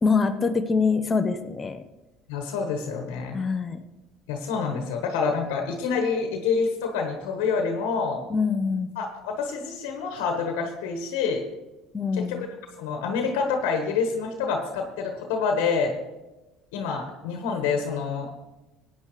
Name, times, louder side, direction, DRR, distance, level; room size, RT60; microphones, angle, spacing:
voice 1, 0.0-1.8 3.3-3.8 8.3-8.9 11.9-12.4, left 4 dB, 30° left, 7 dB, 0.9 m, -24 dB
voice 2, 2.3-3.4 4.3-8.2 8.9-11.4 12.1-12.5 12.8-15.9 16.7-18.3, left 5 dB, 80° left, 3 dB, 1.4 m, -27 dB
17.0 x 9.6 x 3.3 m, 1.0 s
hypercardioid pair, 75°, 0 cm